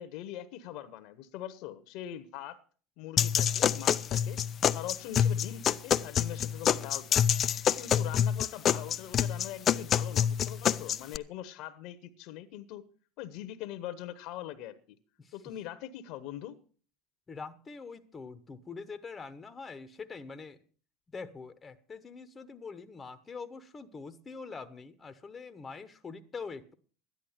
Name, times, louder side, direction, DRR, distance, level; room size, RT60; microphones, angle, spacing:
voice 1, 0.0-2.6 3.0-4.4 4.7-7.2 7.8-12.8 13.2-15.0 15.3-16.6, left 12 dB, 60° left, 1.1 m, -42 dB
sound 1, 3.2-11.2, left 9 dB, 40° left, 0.5 m, -27 dB
voice 2, 17.3-20.6 21.1-26.7, left 4 dB, 25° left, 1.1 m, -44 dB
13.0 x 10.5 x 5.8 m
hypercardioid pair, 85°, 0 cm